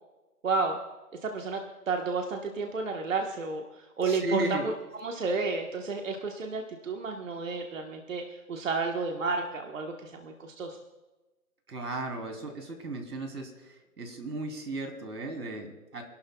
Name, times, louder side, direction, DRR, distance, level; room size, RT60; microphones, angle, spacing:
voice 1, 0.4-0.8 1.2-1.6 1.9-10.8, right 4 dB, 55° right, 2 dB, 1.4 m, -31 dB
voice 2, 4.0-4.6 11.7-16.0, right 2 dB, 80° right, 4 dB, 3.4 m, -35 dB
28.0 x 12.0 x 2.3 m, 1.1 s
hypercardioid pair, 165°, 46 cm